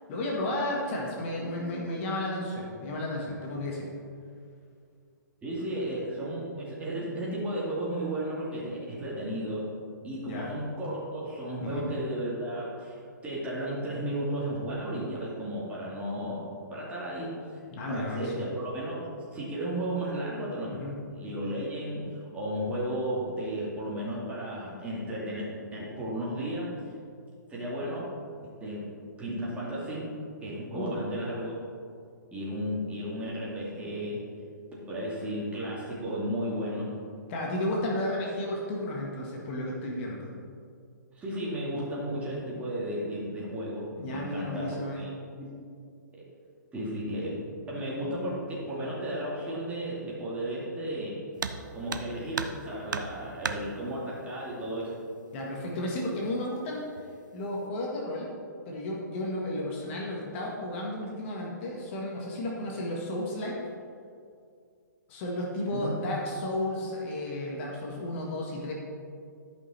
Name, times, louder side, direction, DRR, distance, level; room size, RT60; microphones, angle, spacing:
voice 1, 0.1-3.9 10.3-10.5 11.6-11.9 17.7-18.5 20.7-20.9 30.7-31.0 37.3-40.3 44.0-45.1 55.3-56.8 57.3-58.3 58.7-63.6 65.1-68.7, left 1 dB, 40° left, -2 dB, 1.7 m, -33 dB
voice 2, 5.4-9.6 10.0-17.6 17.9-18.9 19.3-20.7 21.1-25.4 25.7-26.7 27.5-28.1 28.6-28.9 29.2-30.1 30.4-31.6 32.3-34.2 34.7-36.9 41.2-45.1 45.4-45.6 46.2-46.3 46.7-47.3 47.7-51.2 51.7-54.9 65.7-65.9, right 1 dB, 15° right, -6 dB, 2.4 m, -34 dB
sound 1, 51.4-51.6 51.9-52.6 52.9-53.6 54.8-54.9 55.4-55.5 56.2-56.6 57.0-57.4, right 5 dB, 70° right, 0.7 m, -34 dB
12.0 x 5.6 x 4.4 m, 2.3 s
hypercardioid pair, 130°, 10 cm